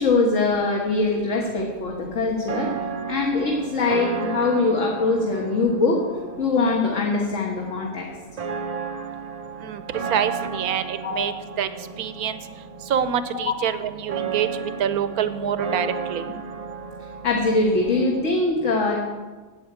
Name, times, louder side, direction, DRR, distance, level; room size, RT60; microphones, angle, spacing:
voice 1, 0.0-2.7 3.1-6.0 6.4-8.1 11.0-11.2 13.5-13.6 17.2-19.0, left 3 dB, 55° left, -1 dB, 1.7 m, -22 dB
sound 1, 0.8-18.4, right 6 dB, 55° right, 0.4 m, -34 dB
voice 2, 10.1-11.7 12.0-12.4 12.9-16.2, right 8 dB, 75° right, 12 dB, 1.2 m, -26 dB
8.7 x 8.3 x 8.8 m, 1.3 s
omnidirectional pair, 1.6 m